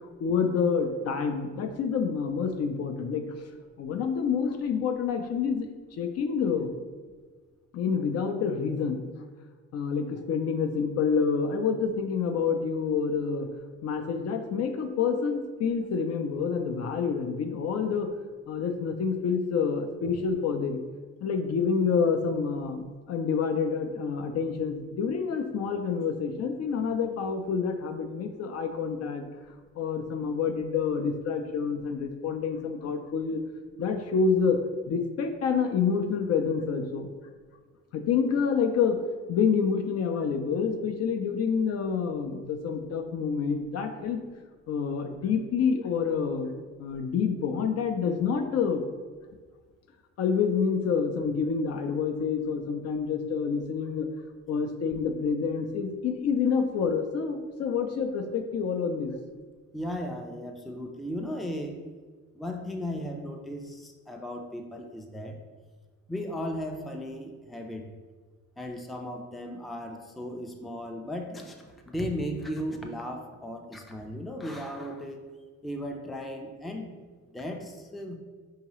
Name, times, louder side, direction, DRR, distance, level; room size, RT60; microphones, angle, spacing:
voice 1, 0.2-3.2 3.8-6.7 7.7-9.0 9.7-13.5 13.8-18.1 18.5-20.8 21.2-29.3 29.8-33.4 33.8-34.6 34.9-37.1 37.9-39.0 39.3-44.2 44.7-48.8 50.2-54.1 54.5-59.1, left 6 dB, 55° left, 6 dB, 0.4 m, -28 dB
voice 2, 59.7-61.8 62.4-65.4 66.1-67.8 68.6-75.2 75.6-76.9 77.3-78.2, equal, ahead, 2 dB, 0.4 m, -36 dB
4.7 x 2.8 x 2.9 m, 1.4 s
cardioid pair, 90°, 30 cm